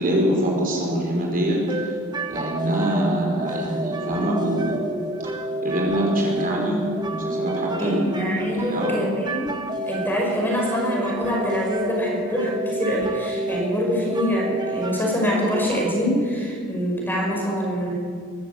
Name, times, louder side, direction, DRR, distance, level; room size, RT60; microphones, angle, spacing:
voice 1, 0.0-2.0 2.3-4.8 5.6-8.1 8.4-9.0, right 1 dB, 40° right, -1 dB, 5.2 m, -24 dB
sound 1, 1.7-15.9, right 2 dB, 20° right, 1.2 m, -30 dB
voice 2, 7.8-9.5 9.8-17.9, equal, 10° left, -2 dB, 5.5 m, -25 dB
23.0 x 14.5 x 8.3 m, 2.2 s
head